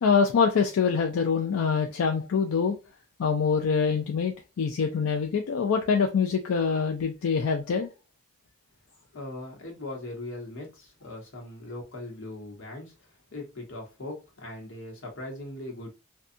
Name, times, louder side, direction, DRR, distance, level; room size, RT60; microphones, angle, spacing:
voice 1, 0.0-2.8 3.2-7.9, left 5 dB, 90° left, 0.4 m, -25 dB
voice 2, 9.1-13.0 13.3-15.9, left 2 dB, 65° left, 1.0 m, -39 dB
2.6 x 2.3 x 2.5 m
head